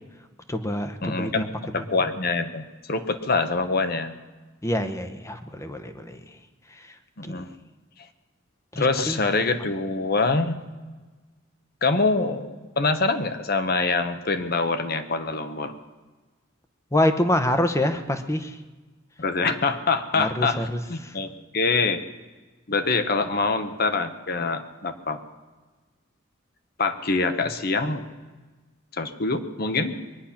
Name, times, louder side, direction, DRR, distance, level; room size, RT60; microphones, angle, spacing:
voice 1, 0.5-1.5 4.6-6.4 6.7-6.9 7.2-7.4 8.7-9.2 16.9-18.6 20.2-21.2, left 1 dB, 15° left, 8 dB, 0.9 m, -26 dB
voice 2, 1.0-4.2 7.2-7.5 8.8-10.6 11.8-15.7 19.2-22.0 22.7-25.2 26.8-28.1 28.9-29.9, left 3 dB, 50° left, 9 dB, 1.0 m, -25 dB
22.0 x 10.0 x 5.8 m, 1.3 s
head